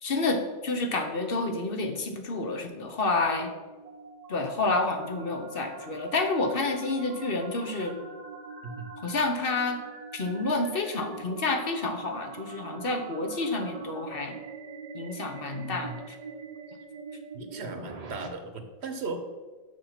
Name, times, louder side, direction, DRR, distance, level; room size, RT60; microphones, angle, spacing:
voice 1, 0.0-3.5 4.3-8.0 9.0-9.8 10.1-14.4 14.9-16.2, left 3 dB, 60° left, 4 dB, 1.1 m, -29 dB
sound 1, 3.2-18.3, right 4 dB, 40° right, 0.8 m, -44 dB
voice 2, 15.5-16.0 17.3-19.2, right 3 dB, 75° right, 7 dB, 1.2 m, -37 dB
6.6 x 5.5 x 5.8 m, 1.3 s
omnidirectional pair, 1.1 m